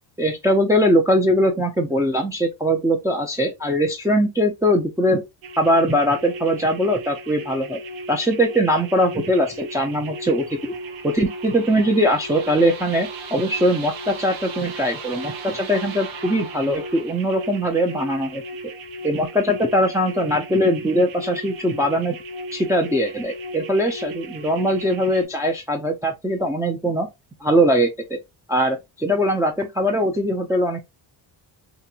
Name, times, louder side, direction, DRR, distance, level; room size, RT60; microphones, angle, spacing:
voice 1, 0.2-5.2 5.6-7.8 8.1-10.7 11.0-18.4 19.0-22.2 22.5-27.1 27.4-28.2 28.5-30.8, equal, 5° right, 0.4 m, -21 dB
sound 1, 5.4-25.2, right 2 dB, 75° right, 0.8 m, -35 dB
2.9 x 2.6 x 2.4 m
cardioid pair, 100°, 47 cm